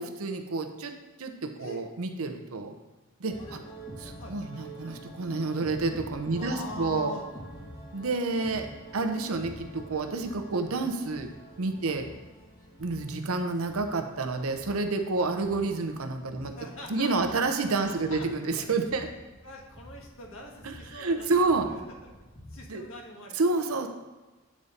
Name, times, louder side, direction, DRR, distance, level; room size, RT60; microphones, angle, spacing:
voice 1, 0.0-2.8 3.2-3.6 4.0-7.2 7.9-8.7 8.9-12.1 12.8-19.1 20.6-21.7 22.7-22.9 23.3-23.9, right 3 dB, 85° right, 6 dB, 0.7 m, -29 dB
sound 1, 3.3-22.6, right 1 dB, 20° left, 1.2 m, -47 dB
voice 2, 6.4-7.2 9.0-9.2 11.8-11.9 15.2-15.3 16.4-18.5 19.4-22.1 22.5-23.3, left 2 dB, 70° left, 0 dB, 1.5 m, -44 dB
8.5 x 4.2 x 5.0 m, 1.2 s
head